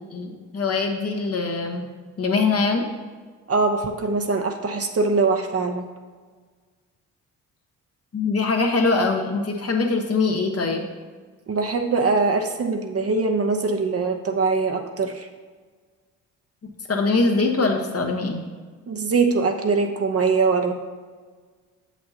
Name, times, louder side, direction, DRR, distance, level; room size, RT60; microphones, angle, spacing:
voice 1, 0.1-1.8 2.2-2.8 8.1-10.9 16.9-18.4, left 3 dB, 45° left, 2 dB, 1.1 m, -22 dB
voice 2, 3.5-5.9 11.5-15.3 18.9-20.7, right 4 dB, 40° right, 5 dB, 0.8 m, -22 dB
6.8 x 6.1 x 2.8 m, 1.5 s
supercardioid pair, 50°, 35 cm